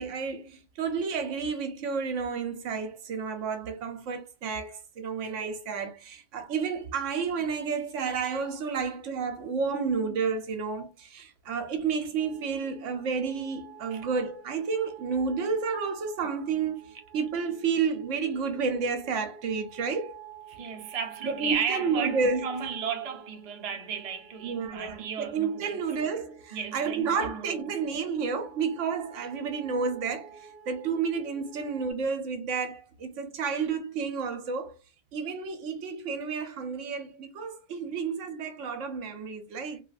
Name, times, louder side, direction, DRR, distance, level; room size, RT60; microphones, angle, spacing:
voice 1, 0.0-20.2 21.2-22.5 24.4-34.8 35.1-39.8, right 5 dB, 70° right, 0.9 m, -31 dB
sound 1, 12.2-31.9, right 6 dB, 30° left, 1.4 m, -50 dB
voice 2, 20.5-25.8 26.5-27.6, right 7 dB, 55° right, 0.4 m, -34 dB
2.9 x 2.7 x 2.5 m
omnidirectional pair, 1.4 m